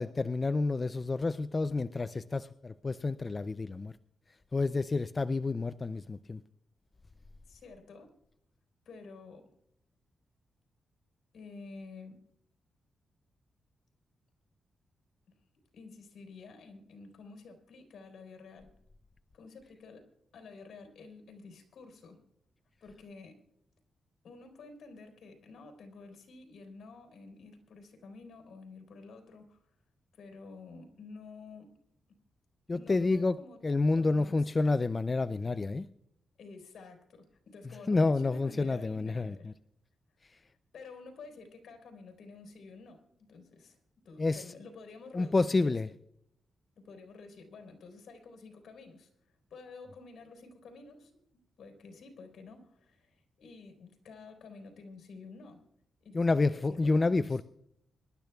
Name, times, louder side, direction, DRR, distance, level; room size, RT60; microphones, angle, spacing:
voice 1, 0.0-3.9 4.5-6.4 32.7-33.4 33.6-35.9 37.9-39.5 44.2-44.4 45.1-45.9 56.1-57.4, left 3 dB, 30° left, 12 dB, 0.4 m, -29 dB
voice 2, 7.5-8.1 8.9-9.5 11.3-12.2 15.3-15.4 15.7-18.7 19.3-20.1 20.3-22.2 22.8-23.4 24.2-29.8 30.1-31.7 32.7-33.6 34.0-34.8 36.4-39.5 40.3-45.7 46.7-55.6 56.0-57.4, left 4 dB, 75° left, 5 dB, 3.8 m, -51 dB
26.0 x 12.0 x 2.3 m, 0.76 s
cardioid pair, 90°, 0 cm